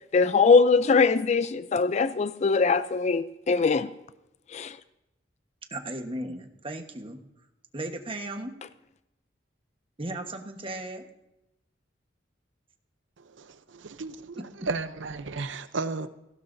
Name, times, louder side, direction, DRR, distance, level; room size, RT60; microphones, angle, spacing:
voice 1, 0.1-3.9 4.5-4.8, left 4 dB, 40° left, 14 dB, 0.4 m, -22 dB
voice 2, 5.7-7.2 7.7-8.5 10.0-11.1 14.4-14.5, right 1 dB, 30° right, 5 dB, 1.2 m, -36 dB
voice 3, 13.2-14.4 14.7-16.1, right 3 dB, 90° right, 12 dB, 0.7 m, -34 dB
17.5 x 16.0 x 2.6 m, 0.90 s
head